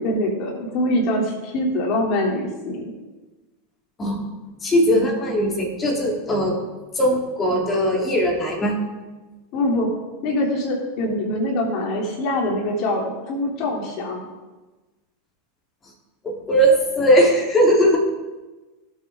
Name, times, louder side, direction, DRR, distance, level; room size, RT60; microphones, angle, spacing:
voice 1, 0.0-2.9 9.5-9.9 10.2-14.2, left 1 dB, 45° left, 0 dB, 3.3 m, -24 dB
voice 2, 4.6-6.6 7.0-8.7 16.2-18.0, equal, 20° left, -1 dB, 3.5 m, -19 dB
17.5 x 7.9 x 3.8 m, 1.2 s
figure-of-eight pair, 85°, 0 cm